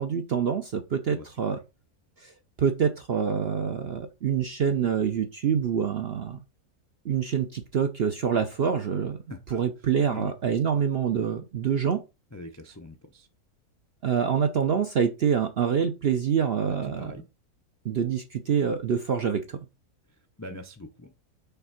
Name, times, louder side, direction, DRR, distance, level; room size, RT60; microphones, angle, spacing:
voice 1, 0.0-1.6 2.2-2.3 2.6-6.4 7.0-9.2 9.5-12.0 14.0-17.1 17.8-19.6, right 7 dB, 60° right, 7 dB, 0.6 m, -26 dB
voice 2, 1.1-1.6 9.3-9.6 10.1-10.3 12.3-13.3 16.7-17.3 20.4-21.1, left 2 dB, 25° left, 6 dB, 0.3 m, -43 dB
5.7 x 3.5 x 5.6 m, 0.27 s
omnidirectional pair, 1.7 m